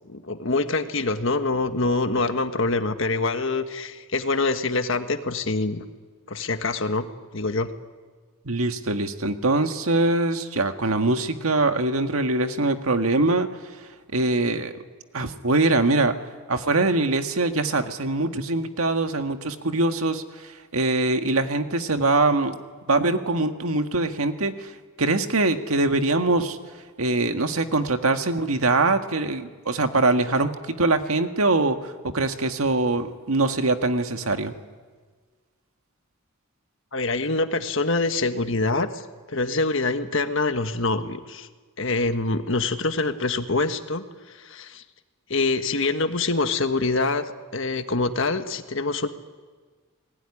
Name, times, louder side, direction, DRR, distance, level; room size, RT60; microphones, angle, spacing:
voice 1, 0.1-5.8 6.3-7.0 7.3-7.7 36.9-39.0 39.3-41.5 41.8-44.0 44.4-44.8 45.3-49.1, left 3 dB, 60° left, 8 dB, 1.6 m, -25 dB
voice 2, 8.5-13.5 14.1-14.7 15.1-16.2 16.5-20.2 20.7-22.6 22.9-24.7 25.0-26.6 27.0-34.5, right 2 dB, 80° right, 7 dB, 1.8 m, -23 dB
29.0 x 20.0 x 9.9 m, 1.5 s
head